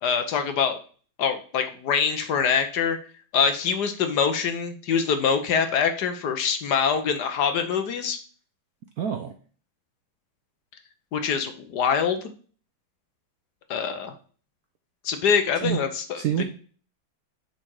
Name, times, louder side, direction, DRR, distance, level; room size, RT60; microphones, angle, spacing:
voice 1, 0.0-0.8 1.2-3.0 3.3-8.2 11.1-12.2 13.7-14.1 15.0-16.4, left 6 dB, 60° left, 7 dB, 1.3 m, -24 dB
voice 2, 9.0-9.3 15.6-15.8 16.2-16.4, right 9 dB, 70° right, 5 dB, 0.9 m, -26 dB
6.8 x 4.3 x 4.7 m, 0.41 s
omnidirectional pair, 2.3 m